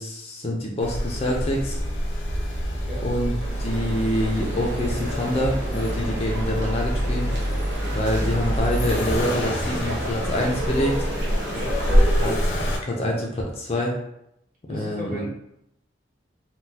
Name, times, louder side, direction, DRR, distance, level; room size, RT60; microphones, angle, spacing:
voice 1, 0.0-1.8 3.0-3.3 3.6-7.3 7.9-11.1 12.2-13.9 14.7-15.2, left 1 dB, 30° left, -2 dB, 0.4 m, -26 dB
Accelerating revving vroom, 0.8-12.8, equal, 80° left, 0.7 m, -26 dB
voice 2, 2.7-3.0 11.5-11.7 14.7-15.3, equal, 45° right, -7 dB, 1.3 m, -36 dB
sound 1, 3.4-12.3, equal, 65° right, 0.9 m, -33 dB
3.8 x 2.2 x 2.7 m, 0.79 s
head